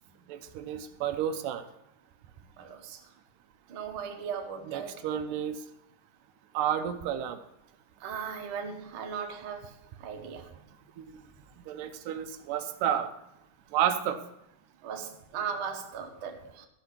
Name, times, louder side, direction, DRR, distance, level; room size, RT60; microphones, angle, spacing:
voice 1, 0.3-1.6 4.6-5.6 6.5-7.4 11.0-11.1 11.7-13.1 13.7-14.2, right 9 dB, 85° right, 2.3 m, -31 dB
voice 2, 2.6-3.0 3.7-5.0 8.0-9.7 10.0-10.5 14.8-16.7, right 6 dB, 60° right, 1.4 m, -37 dB
13.5 x 5.9 x 5.9 m
omnidirectional pair, 3.8 m